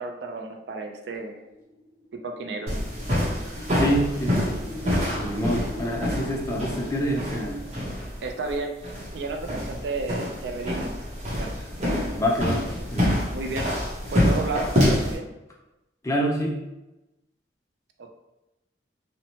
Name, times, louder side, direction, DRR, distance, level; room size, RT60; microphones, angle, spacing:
voice 1, 0.0-1.4 2.2-2.7 8.2-10.9 11.3-11.5 13.3-13.7 14.1-15.3 18.0-18.1, right 3 dB, 70° right, 3 dB, 0.4 m, -32 dB
sound 1, 1.2-6.0, left 1 dB, 50° left, 1.3 m, -43 dB
sound 2, 2.7-15.2, left 1 dB, 40° right, 0.8 m, -27 dB
voice 2, 3.8-4.6 5.2-7.6 12.1-12.6 12.9-13.2 16.0-16.6, equal, 15° left, -2 dB, 0.4 m, -26 dB
3.0 x 2.1 x 2.7 m, 0.97 s
head